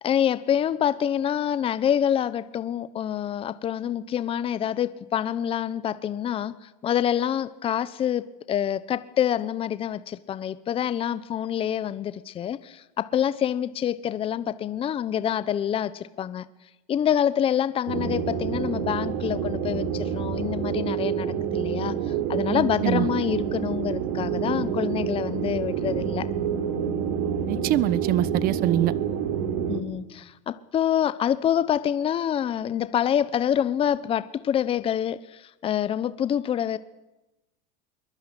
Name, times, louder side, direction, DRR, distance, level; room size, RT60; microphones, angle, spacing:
voice 1, 0.0-16.5 16.9-26.3 29.7-36.8, left 9 dB, 25° left, 15 dB, 0.9 m, -26 dB
sound 1, 17.9-29.8, right 8 dB, 70° right, 3.6 m, -28 dB
voice 2, 22.5-23.1 27.5-28.9, right 12 dB, 45° right, 18 dB, 1.3 m, -24 dB
22.5 x 21.5 x 9.9 m, 0.96 s
supercardioid pair, 135°, 20 cm